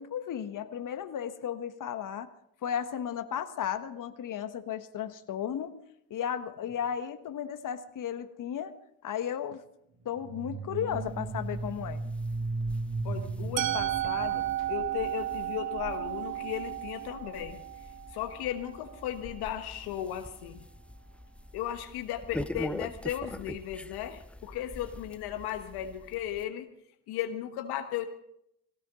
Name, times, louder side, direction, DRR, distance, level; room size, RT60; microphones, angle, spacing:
voice 1, 0.0-2.3 2.6-5.8 6.1-8.7 9.0-9.6 10.0-12.0, left 9 dB, 50° left, 10 dB, 1.4 m, -34 dB
sound 1, 10.2-15.0, right 3 dB, 45° right, 1.9 m, -36 dB
sound 2, 10.9-26.4, left 1 dB, 5° left, 0.5 m, -44 dB
voice 2, 13.0-17.6 18.1-20.6 21.5-26.7 27.1-28.1, left 11 dB, 65° left, 7 dB, 1.3 m, -36 dB
Musical instrument, 13.6-19.5, right 14 dB, 85° right, 0.8 m, -34 dB
18.0 x 17.5 x 3.8 m, 0.74 s
hypercardioid pair, 50°, 40 cm